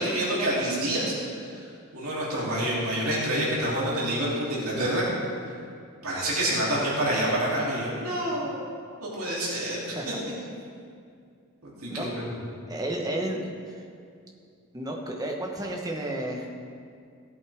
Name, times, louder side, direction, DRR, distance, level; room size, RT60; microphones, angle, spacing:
voice 1, 0.0-1.7 1.9-5.3 6.0-8.6 9.0-9.8 10.1-10.3 11.6-12.2, right 1 dB, 80° right, -6 dB, 3.0 m, -27 dB
voice 2, 12.7-13.8 14.7-16.6, right 1 dB, 15° right, 0 dB, 1.1 m, -32 dB
16.0 x 8.3 x 3.6 m, 2.3 s
head